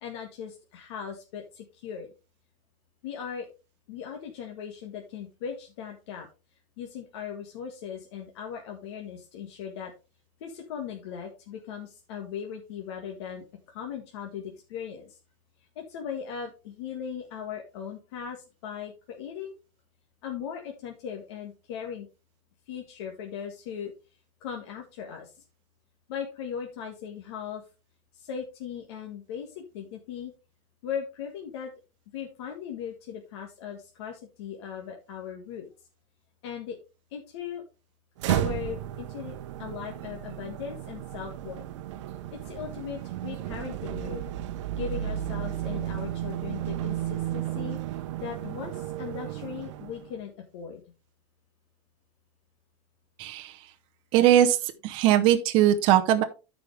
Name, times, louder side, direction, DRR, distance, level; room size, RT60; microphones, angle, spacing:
voice 1, 0.0-2.1 3.0-3.5 3.9-6.3 6.8-9.9 10.4-15.2 15.7-19.5 20.2-22.1 22.7-23.9 24.4-25.4 26.1-27.6 28.1-30.3 30.8-31.7 32.1-35.7 36.4-36.8 37.1-37.6 38.3-41.6 42.3-44.3 44.8-50.8, left 8 dB, 60° left, 2 dB, 1.6 m, -38 dB
sound 1, 38.2-50.2, right 12 dB, 75° right, 0.8 m, -33 dB
voice 2, 53.2-53.5 54.1-54.6 54.8-56.2, right 12 dB, 35° right, 5 dB, 0.7 m, -20 dB
13.0 x 5.0 x 3.3 m, 0.30 s
supercardioid pair, 180°, 16 cm